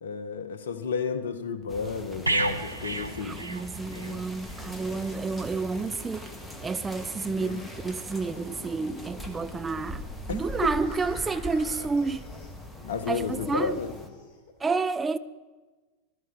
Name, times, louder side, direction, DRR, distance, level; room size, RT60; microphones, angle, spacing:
voice 1, 0.0-3.4 3.9-4.2 10.3-10.7 12.9-13.9, left 5 dB, 60° left, 1.3 m, -32 dB
sound 1, 1.6-14.6, left 4 dB, 30° left, 2.7 m, -48 dB
sound 2, 1.7-14.1, equal, 10° left, 1.7 m, -41 dB
sound 3, 2.3-4.2 4.5-4.7, right 2 dB, 85° right, 0.8 m, -30 dB
voice 2, 3.2-6.3 6.6-10.0 10.3-12.2 13.1-13.8 14.6-15.2, right 4 dB, 15° right, 0.4 m, -30 dB
14.5 x 12.5 x 7.3 m
figure-of-eight pair, 90°, 0 cm